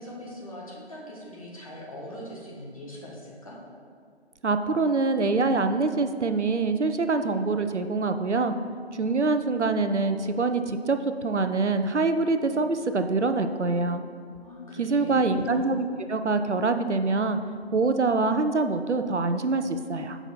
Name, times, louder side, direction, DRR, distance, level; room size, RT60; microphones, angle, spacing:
voice 1, 0.0-3.6 14.4-15.5, left 1 dB, 30° left, -4 dB, 1.3 m, -41 dB
voice 2, 4.4-8.5 8.9-14.0 14.8-17.4 17.7-20.2, right 3 dB, 85° right, 8 dB, 0.7 m, -25 dB
8.0 x 5.6 x 4.3 m, 2.2 s
figure-of-eight pair, 160°, 34 cm